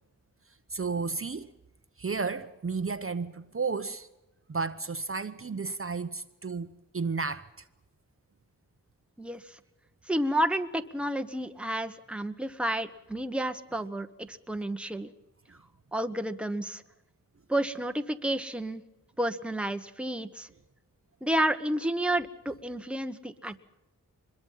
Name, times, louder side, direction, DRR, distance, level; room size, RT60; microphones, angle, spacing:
voice 1, 0.7-1.5 2.0-4.1 4.5-7.5, right 4 dB, 40° right, 0.9 m, -32 dB
voice 2, 9.2-9.6 10.1-15.1 15.9-16.8 17.5-18.8 19.2-20.5 21.2-23.6, right 1 dB, 5° right, 1.2 m, -31 dB
24.0 x 21.5 x 5.6 m
wide cardioid pair, 70°, 34 cm